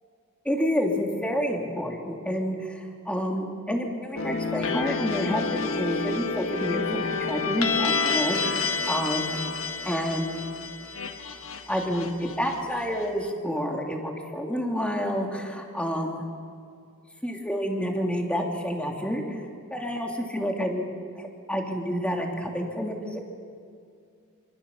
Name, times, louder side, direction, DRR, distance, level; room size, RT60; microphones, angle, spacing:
voice 1, 0.4-9.4 9.8-10.4 11.7-16.3 17.2-19.4 19.7-20.9 21.1-23.2, equal, 5° left, 1 dB, 2.9 m, -29 dB
sound 1, 4.2-13.0, left 5 dB, 65° left, 1.6 m, -29 dB
25.5 x 25.5 x 7.2 m, 2.3 s
head